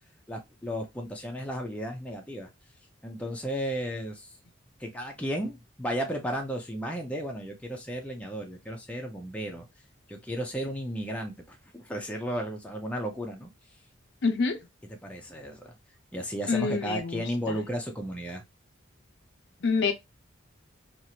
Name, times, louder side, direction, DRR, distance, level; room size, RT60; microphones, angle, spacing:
voice 1, 0.3-2.5 3.0-4.3 4.8-9.6 10.1-13.5 14.9-15.7 16.1-18.4, equal, 5° left, 0.5 m, -34 dB
voice 2, 14.2-14.6 16.5-17.6 19.6-19.9, left 4 dB, 60° left, 0.5 m, -27 dB
3.0 x 2.5 x 2.7 m
head